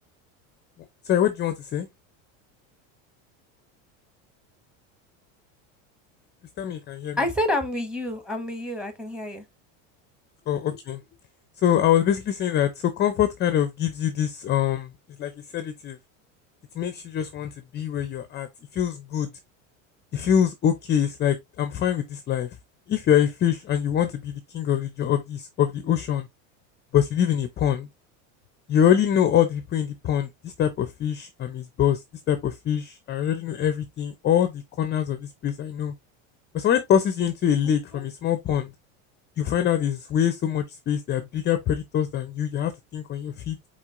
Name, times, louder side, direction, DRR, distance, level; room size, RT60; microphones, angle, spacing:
voice 1, 1.0-1.9 6.6-7.2 10.5-11.0 11.6-14.9 15.2-16.0 16.7-18.5 18.7-19.3 20.1-22.5 22.9-26.3 26.9-27.9 28.7-32.0 32.3-35.9 36.5-38.7 39.4-43.6, left 10 dB, 25° left, 0.5 m, -24 dB
voice 2, 7.2-9.4 37.9-38.0, left 1 dB, ahead, 1.0 m, -28 dB
4.4 x 4.3 x 2.4 m
supercardioid pair, 130°, 40 cm